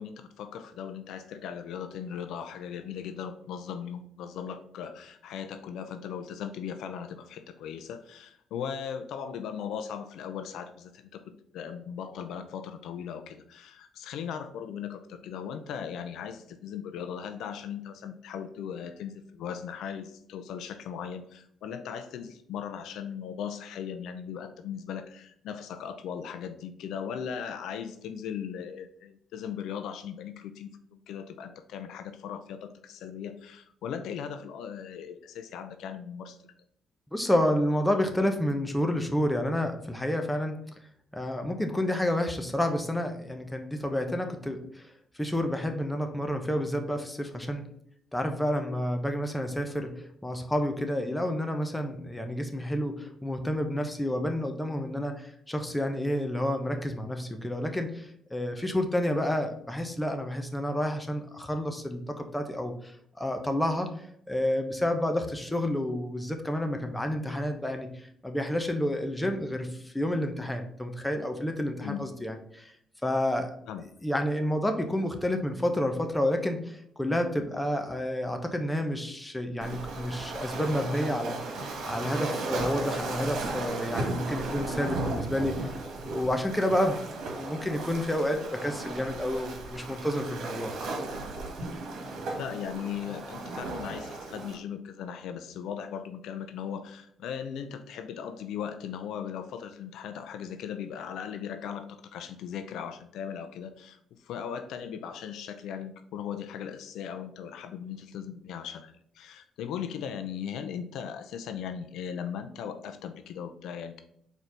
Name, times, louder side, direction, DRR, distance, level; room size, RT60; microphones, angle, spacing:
voice 1, 0.0-36.4 71.8-72.0 73.7-73.8 92.4-104.0 104.2-114.0, left 8 dB, 85° left, 8 dB, 0.6 m, -38 dB
voice 2, 37.1-40.6 41.1-44.9 45.2-47.7 48.1-63.9 64.3-72.7 73.0-73.5 74.0-85.7 86.0-87.0 87.3-90.7, left 1 dB, 10° left, 5 dB, 1.1 m, -30 dB
Waves surf, 79.6-94.5, right 2 dB, 75° right, 1.7 m, -35 dB
4.6 x 4.2 x 5.3 m, 0.68 s
cardioid pair, 90°, 0 cm